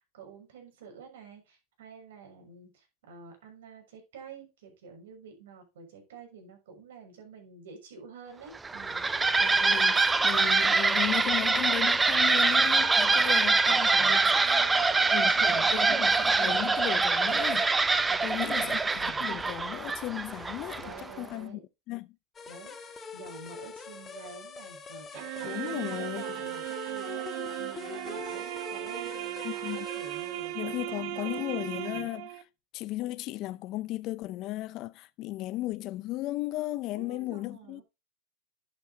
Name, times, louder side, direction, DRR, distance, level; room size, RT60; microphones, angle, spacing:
voice 1, 0.1-9.1 13.0-16.6 18.1-19.3 20.8-21.7 22.5-32.1 36.9-37.8, right 5 dB, 90° right, 6.4 m, -48 dB
sound 1, 8.5-21.1, right 3 dB, 10° right, 0.6 m, -24 dB
voice 2, 9.4-14.6 15.1-17.7 18.0-21.6 21.9-22.1 25.4-26.4 29.4-29.9 30.5-32.5 32.7-37.8, left 17 dB, 40° left, 0.5 m, -36 dB
sound 2, 22.3-30.6, left 5 dB, 20° left, 1.6 m, -44 dB
sound 3, 25.1-32.4, right 16 dB, 55° right, 1.1 m, -37 dB
11.5 x 8.9 x 2.9 m
supercardioid pair, 145°, 0 cm